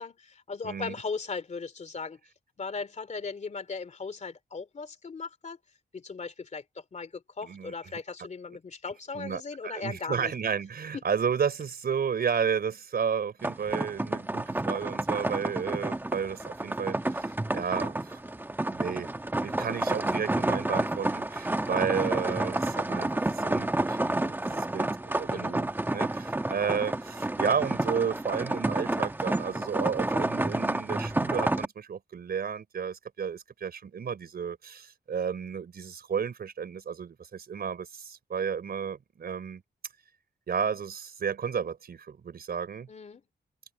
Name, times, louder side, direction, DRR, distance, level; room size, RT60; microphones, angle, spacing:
voice 1, 0.0-2.2 2.6-5.6 5.9-10.3 10.9-11.0 25.3-25.6 42.9-43.2, left 4 dB, 45° left, 2.8 m, -38 dB
voice 2, 0.6-0.9 7.4-7.7 9.1-18.2 18.7-19.1 19.4-39.6 40.5-42.9, right 7 dB, 70° right, 4.6 m, -32 dB
sound 1, 13.4-31.6, right 2 dB, 10° right, 1.2 m, -30 dB
wide cardioid pair, 140°, 16 cm